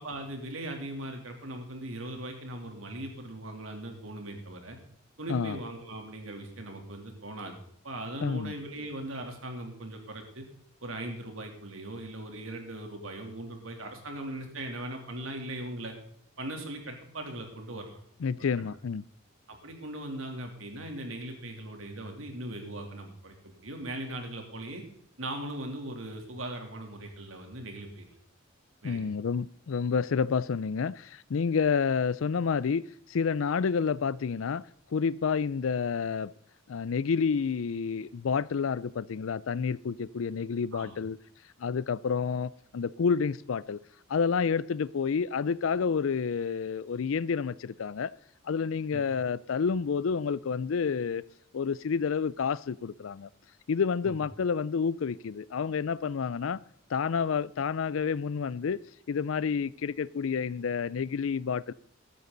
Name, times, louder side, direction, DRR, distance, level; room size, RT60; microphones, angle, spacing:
voice 1, 0.0-4.8 5.2-7.6 7.8-10.4 10.8-15.9 16.4-18.0 18.4-18.5 19.5-24.8 25.2-28.1 28.8-29.0 40.7-41.0 48.9-49.0 54.0-54.2, right 1 dB, 90° right, 3 dB, 3.1 m, -39 dB
voice 2, 5.3-5.6 8.2-8.5 18.2-19.0 28.8-34.7 34.9-36.3 36.7-41.2 41.6-43.8 44.1-48.1 48.4-51.2 51.5-53.3 53.7-56.6 56.9-58.8 59.1-61.7, left 6 dB, 80° left, 19 dB, 0.4 m, -29 dB
15.0 x 12.5 x 3.9 m, 0.66 s
head